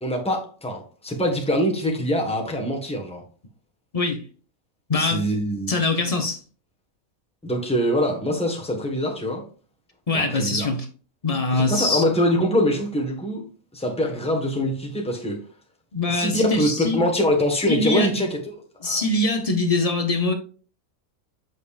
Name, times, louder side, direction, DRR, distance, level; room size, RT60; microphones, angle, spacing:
voice 1, 0.0-3.2 4.9-5.8 7.4-9.4 10.1-10.7 11.5-13.5 13.7-15.4 16.1-18.6 18.9-19.0, equal, 5° left, 1.1 m, -24 dB
voice 2, 4.9-5.2 5.7-6.4 10.1-10.9 11.2-12.0 15.9-17.0 17.7-18.2 18.8-20.3, left 2 dB, 35° left, 0.7 m, -23 dB
7.6 x 5.4 x 2.4 m
omnidirectional pair, 1.5 m